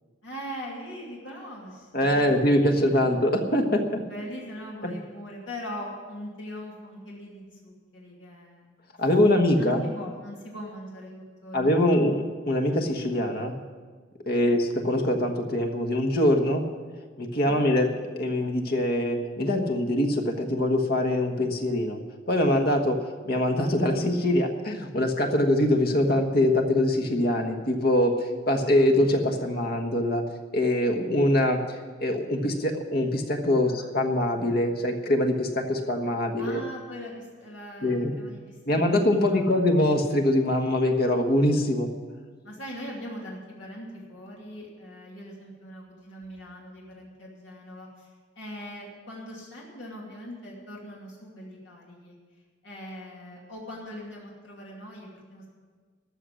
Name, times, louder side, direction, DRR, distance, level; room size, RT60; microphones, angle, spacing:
voice 1, 0.2-3.4 4.1-8.7 9.6-12.2 14.4-14.6 17.4-17.7 33.7-33.9 36.4-38.8 39.2-39.8 42.4-52.2 52.6-55.5, equal, 75° left, -3 dB, 2.6 m, -41 dB
voice 2, 1.9-4.0 4.8-4.9 9.0-9.8 11.5-13.6 14.3-16.7 17.2-22.0 22.3-23.0 23.2-30.2 30.5-36.6 37.8-38.1 38.7-41.9, left 1 dB, 55° left, 4 dB, 1.4 m, -23 dB
13.5 x 6.4 x 10.0 m, 1.5 s
head